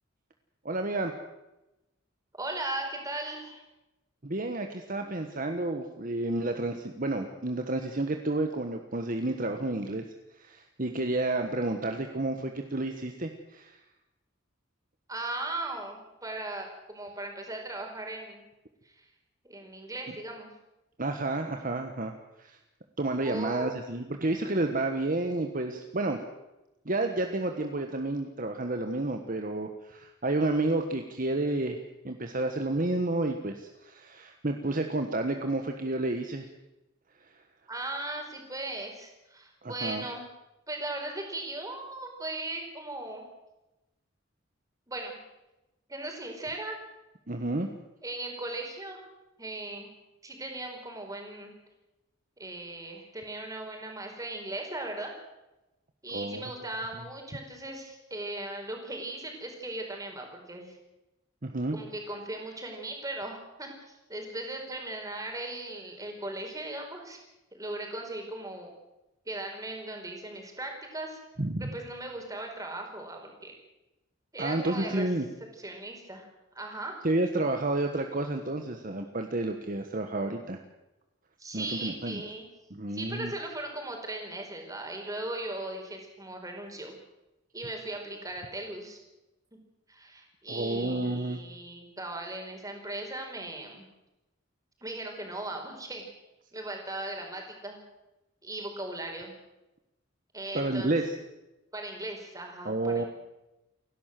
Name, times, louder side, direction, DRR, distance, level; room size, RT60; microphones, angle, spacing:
voice 1, 0.6-1.1 4.2-10.0 10.4-13.8 21.0-22.1 22.4-22.6 23.0-26.2 26.8-31.8 32.0-36.5 39.6-40.0 47.3-47.7 56.1-56.4 61.4-61.8 71.4-71.7 74.4-75.3 77.0-80.6 81.5-82.2 82.7-83.3 90.5-91.4 100.5-101.0 102.6-103.0, right 2 dB, 45° right, 5 dB, 1.4 m, -30 dB
voice 2, 2.4-3.6 15.1-18.4 18.8-19.1 19.4-20.5 23.2-23.7 37.7-40.2 40.7-43.2 44.9-45.2 45.9-46.8 48.0-49.0 49.4-49.9 50.2-51.5 52.4-55.1 56.0-60.8 61.7-67.2 67.5-68.7 69.2-71.2 71.6-73.5 74.3-75.1 75.5-76.3 76.5-76.9 81.4-82.5 82.9-86.9 87.5-89.0 89.9-93.9 94.8-96.0 96.5-97.8 98.4-99.4 100.3-101.0 101.7-103.1, right 2 dB, 20° right, 2 dB, 4.9 m, -38 dB
29.0 x 12.0 x 7.7 m, 0.96 s
head